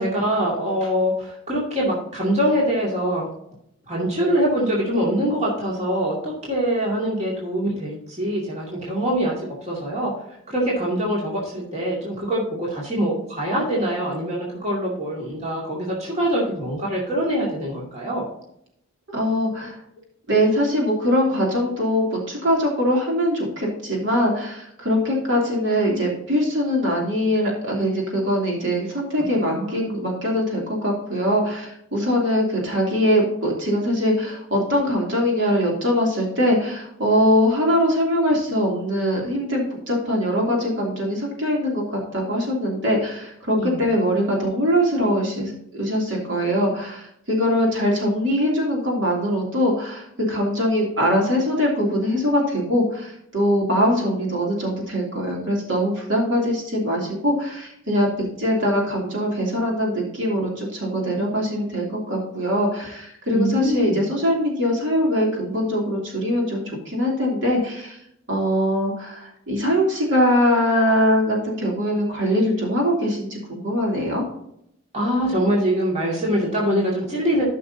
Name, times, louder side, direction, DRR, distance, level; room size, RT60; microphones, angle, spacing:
voice 1, 0.0-3.3 3.9-18.2 29.4-30.0 43.5-43.8 63.3-64.0 74.9-77.4, equal, 35° right, -4 dB, 2.3 m, -24 dB
voice 2, 19.1-19.8 20.3-68.0 68.3-74.2, equal, 65° right, -2 dB, 3.0 m, -22 dB
14.0 x 6.0 x 2.8 m, 0.75 s
head